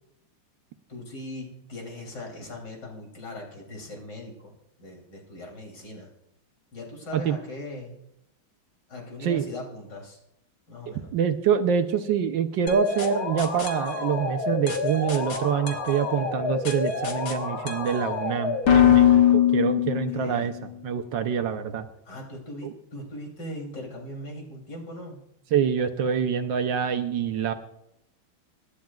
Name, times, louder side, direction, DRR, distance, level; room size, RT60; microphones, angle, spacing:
voice 1, 0.9-4.5 4.8-6.1 6.7-8.0 8.9-10.2 10.7-11.1 19.9-20.5 22.1-25.2, left 1 dB, 55° left, 0 dB, 3.8 m, -39 dB
voice 2, 11.1-21.8 22.6-22.7 25.5-27.5, right 7 dB, 70° right, 7 dB, 1.4 m, -26 dB
sound 1, 12.7-20.5, left 9 dB, 85° left, 2.3 m, -24 dB
25.5 x 11.5 x 2.4 m, 0.80 s
omnidirectional pair, 2.2 m